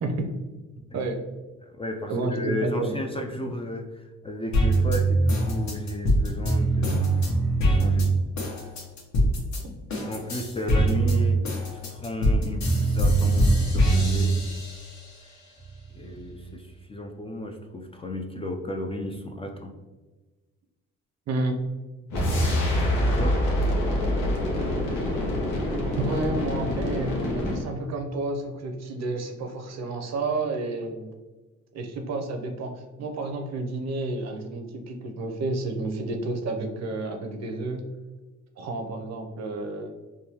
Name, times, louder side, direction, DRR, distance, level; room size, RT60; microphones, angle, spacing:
voice 1, 0.0-0.4 0.9-1.2 2.1-3.5 21.3-21.6 24.2-24.3 26.0-31.1 31.7-37.9 38.6-39.9, right 2 dB, 60° right, 4 dB, 0.6 m, -30 dB
voice 2, 1.6-7.2 7.6-8.1 10.0-14.3 15.2-15.4 15.9-19.7 23.0-23.4, left 1 dB, 20° left, 3 dB, 0.3 m, -34 dB
sound 1, 4.5-9.6 9.9-15.1 15.6-16.5, right 2 dB, 65° left, 1.1 m, -23 dB
sound 2, 22.1-27.7, left 1 dB, 85° left, 0.9 m, -25 dB
3.5 x 2.2 x 2.8 m, 1.2 s
cardioid pair, 90°, 30 cm